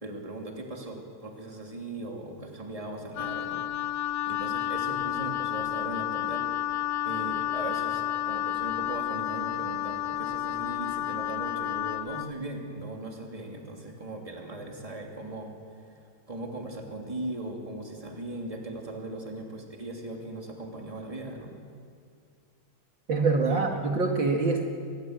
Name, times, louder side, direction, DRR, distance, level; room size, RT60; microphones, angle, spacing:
voice 1, 0.0-3.6 4.2-6.4 7.0-15.5 16.3-21.5 23.5-23.8, right 2 dB, 15° right, 1 dB, 3.0 m, -38 dB
Wind instrument woodwind instrument, 3.1-12.3, left 12 dB, 70° left, 0.8 m, -31 dB
voice 2, 23.1-24.6, right 3 dB, 60° right, 2 dB, 2.4 m, -25 dB
25.0 x 20.0 x 8.1 m, 2.3 s
omnidirectional pair, 2.4 m